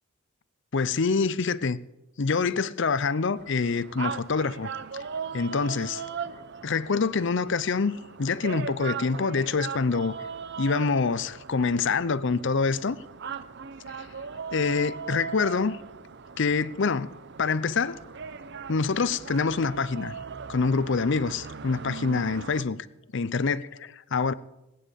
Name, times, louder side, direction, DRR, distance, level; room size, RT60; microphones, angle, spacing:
voice 1, 0.7-1.8 2.2-4.7 5.3-6.0 6.6-10.1 10.6-13.0 13.9-14.1 14.5-15.8 16.4-17.1 17.4-18.0 18.7-20.1 20.5-22.9 23.1-23.6 24.1-24.3, left 4 dB, 60° left, 0.6 m, -26 dB
sound 1, 3.4-22.6, right 6 dB, 55° right, 0.7 m, -39 dB
19.0 x 9.4 x 6.9 m
head